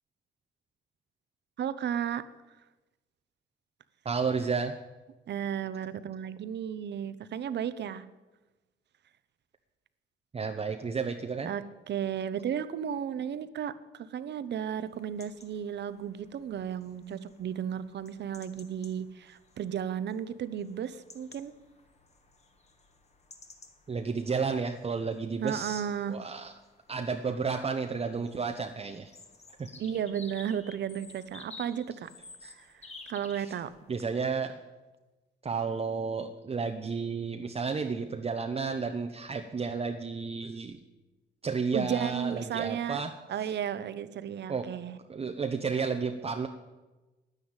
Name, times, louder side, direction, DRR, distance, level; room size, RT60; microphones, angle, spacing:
voice 1, 1.6-2.2 5.3-8.1 11.5-21.5 25.4-26.2 29.8-32.1 32.4-32.8 33.1-33.7 41.7-43.0 43.3-45.0, right 9 dB, 60° right, 14 dB, 0.9 m, -34 dB
voice 2, 4.0-4.8 10.3-11.5 23.9-26.5 26.9-29.1 29.6-29.7 32.4-32.5 33.4-33.5 33.9-34.6 35.4-40.8 41.4-43.1 43.4-43.5 44.5-44.7 45.1-46.5, right 5 dB, 30° right, 5 dB, 0.9 m, -32 dB
sound 1, 14.9-34.0, left 3 dB, 35° left, 1.8 m, -54 dB
10.0 x 9.9 x 8.9 m, 1.1 s
cardioid pair, 90°, 20 cm